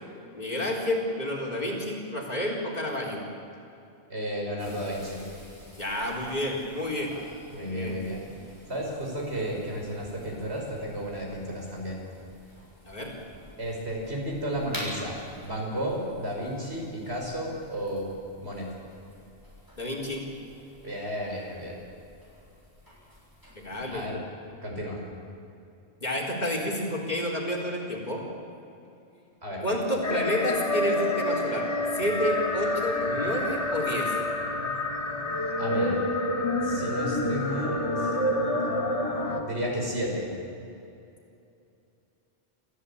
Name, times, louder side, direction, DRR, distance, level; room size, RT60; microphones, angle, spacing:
voice 1, 0.3-3.2 5.8-7.1 7.5-8.0 12.9-13.1 19.8-20.2 23.6-24.1 26.0-28.2 29.6-31.7 31.9-34.2, left 1 dB, 40° left, -1 dB, 4.2 m, -30 dB
voice 2, 4.1-5.2 7.1-7.2 7.5-8.3 8.7-12.0 13.6-18.1 18.4-18.7 20.8-21.8 23.9-24.2 24.6-25.0 29.4-29.6 35.6-36.0 36.6-38.6 39.4-40.3, equal, 70° right, -1 dB, 5.8 m, -33 dB
sound 1, 4.6-24.0, equal, 20° right, 6.7 m, -48 dB
sound 2, 30.0-39.4, left 1 dB, 85° left, 2.6 m, -28 dB
28.0 x 14.5 x 8.7 m, 2.7 s
omnidirectional pair, 1.1 m